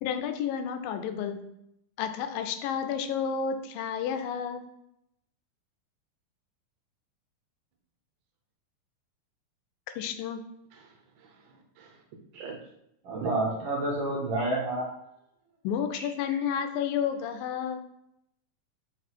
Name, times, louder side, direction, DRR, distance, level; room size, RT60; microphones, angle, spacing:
voice 1, 0.0-1.4 2.0-4.7 10.0-10.4 15.6-17.8, left 7 dB, 90° left, 8 dB, 2.4 m, -31 dB
voice 2, 10.7-12.0 12.3-12.6 13.1-13.3, right 6 dB, 75° right, 2 dB, 2.2 m, -43 dB
voice 3, 13.0-14.9 15.9-16.3, right 2 dB, 55° right, -4 dB, 2.0 m, -30 dB
5.5 x 3.9 x 4.6 m, 0.77 s
omnidirectional pair, 3.9 m